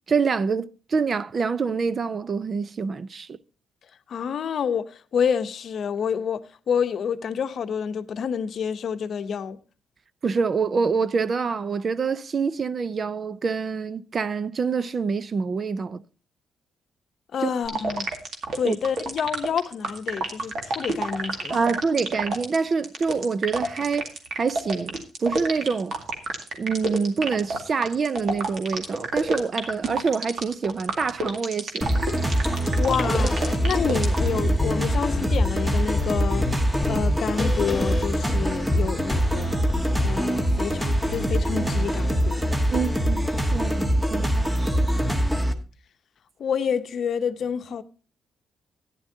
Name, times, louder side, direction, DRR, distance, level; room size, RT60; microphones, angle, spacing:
voice 1, 0.0-3.4 10.2-16.0 17.4-17.5 18.6-18.8 21.5-26.0 26.6-32.0 42.7-43.3 43.5-45.1, right 5 dB, 45° right, 0.5 m, -26 dB
voice 2, 4.1-9.6 17.3-18.1 18.6-21.6 32.5-36.5 36.8-39.6 40.0-42.5 46.4-47.8, left 7 dB, 60° left, 0.7 m, -28 dB
sound 1, 17.6-34.3, right 3 dB, 60° right, 2.1 m, -28 dB
sound 2, 31.8-45.5, equal, 10° right, 1.3 m, -24 dB
sound 3, 33.2-40.0, left 3 dB, 25° left, 1.7 m, -31 dB
14.0 x 10.0 x 2.7 m
cardioid pair, 100°, 0 cm